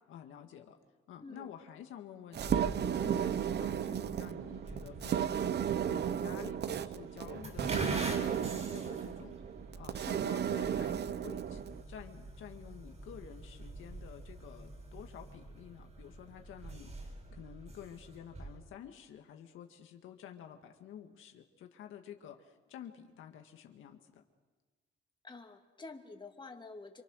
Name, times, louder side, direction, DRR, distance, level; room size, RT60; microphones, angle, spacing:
voice 1, 0.1-0.8 1.1-9.4 9.8-11.6 11.9-24.2, left 9 dB, 85° left, 4 dB, 2.0 m, -50 dB
voice 2, 1.2-1.5 25.2-27.0, left 3 dB, 25° left, 3 dB, 2.6 m, -48 dB
sound 1, 2.3-11.8, right 9 dB, 60° right, 0.9 m, -34 dB
sound 2, 2.4-18.6, right 2 dB, 35° right, 6.9 m, -45 dB
27.5 x 24.5 x 6.5 m, 1.3 s
cardioid pair, 90°, 20 cm